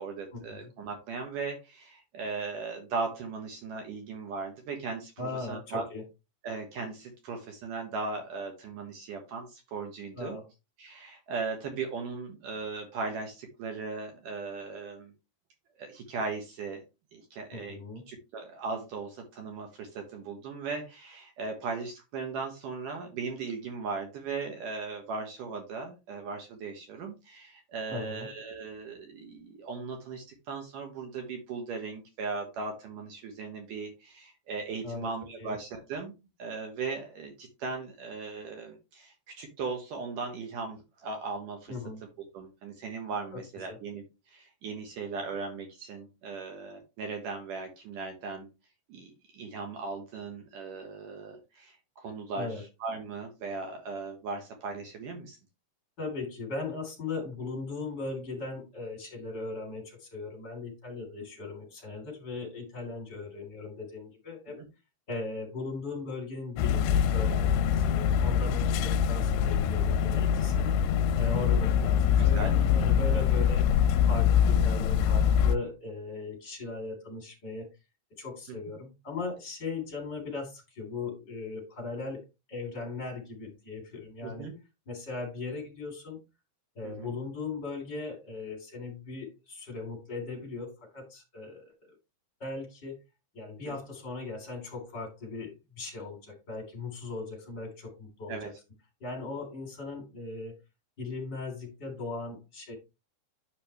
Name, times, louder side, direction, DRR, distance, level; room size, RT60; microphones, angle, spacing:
voice 1, 0.0-5.9 6.4-10.4 10.8-15.1 15.8-16.8 17.1-17.8 18.1-36.1 36.4-41.7 42.3-48.5 48.9-52.5 52.8-55.4 64.6-64.7 72.2-72.5 84.2-84.5 86.8-87.1 93.7-93.8 98.3-98.5, right 4 dB, 60° right, 3 dB, 2.5 m, -38 dB
voice 2, 5.2-6.0 10.1-10.4 17.5-18.0 27.9-28.3 34.8-35.1 35.4-35.5 41.7-42.0 43.3-43.4 43.7-43.8 52.3-52.6 56.0-64.6 65.1-70.7 71.1-73.7 74.1-77.7 78.2-84.5 84.8-86.2 86.7-91.9 92.4-93.0 93.3-98.5 99.0-100.5 101.0-102.8, left 3 dB, 25° left, 0 dB, 3.5 m, -38 dB
sound 1, 66.6-75.6, left 8 dB, 80° left, 2.7 m, -24 dB
9.7 x 5.6 x 3.3 m, 0.26 s
omnidirectional pair, 5.0 m